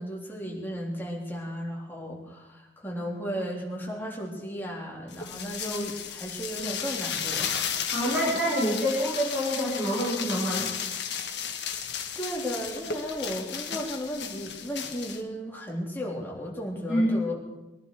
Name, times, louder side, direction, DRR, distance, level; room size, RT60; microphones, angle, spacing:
voice 1, 0.0-7.8 12.1-17.4, equal, 15° left, -3 dB, 3.4 m, -35 dB
sound 1, 5.1-15.2, left 7 dB, 70° left, 1.4 m, -34 dB
voice 2, 7.9-10.7 16.9-17.1, equal, 5° right, -8 dB, 4.0 m, -26 dB
21.5 x 11.0 x 4.7 m, 1.0 s
head